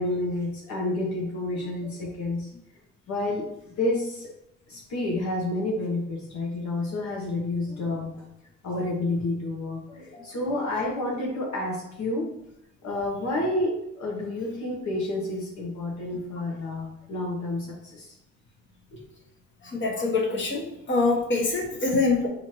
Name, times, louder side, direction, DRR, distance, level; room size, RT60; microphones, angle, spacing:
voice 1, 0.0-2.5 3.1-4.3 4.7-8.2 8.6-12.3 12.8-18.2 18.9-19.0, left 2 dB, 70° left, -2 dB, 1.0 m, -29 dB
voice 2, 19.7-20.6 20.9-22.3, left 3 dB, 40° left, -1 dB, 1.2 m, -24 dB
4.2 x 2.7 x 3.0 m, 0.81 s
cardioid pair, 90°, 30 cm